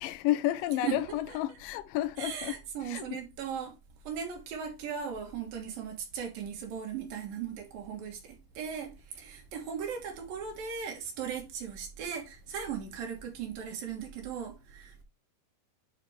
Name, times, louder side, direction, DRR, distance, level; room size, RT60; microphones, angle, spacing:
voice 1, 0.0-2.6 2.9-3.2, left 14 dB, 85° left, 2.0 m, -31 dB
voice 2, 0.7-1.6 2.2-3.7 4.1-15.0, right 7 dB, 65° right, 2.9 m, -38 dB
10.0 x 4.2 x 3.2 m
omnidirectional pair, 4.7 m